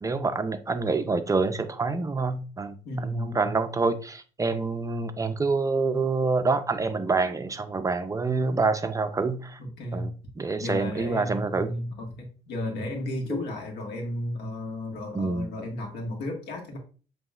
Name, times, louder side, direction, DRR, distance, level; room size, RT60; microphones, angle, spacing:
voice 1, 0.0-9.6 9.9-11.7 15.1-15.5, right 3 dB, 20° right, 0.4 m, -27 dB
voice 2, 2.8-3.5 9.6-10.1 10.6-16.8, left 1 dB, 80° left, 1.5 m, -33 dB
7.4 x 3.0 x 2.4 m
cardioid pair, 110°, 17 cm